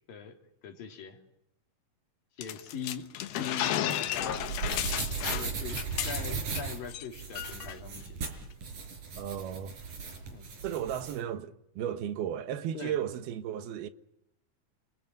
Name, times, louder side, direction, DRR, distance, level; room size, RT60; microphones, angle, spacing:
voice 1, 0.6-1.2 2.4-4.5 5.2-8.3 10.3-10.5 12.7-13.0, left 6 dB, 65° left, 4.6 m, -41 dB
sound 1, 2.4-6.6 6.9-7.1 7.4-7.8, left 12 dB, 90° left, 3.3 m, -33 dB
sound 2, 4.1-11.2, right 5 dB, 55° right, 5.8 m, -37 dB
voice 2, 9.2-9.8 10.6-13.9, right 10 dB, 85° right, 3.2 m, -34 dB
29.5 x 21.0 x 9.3 m
omnidirectional pair, 4.3 m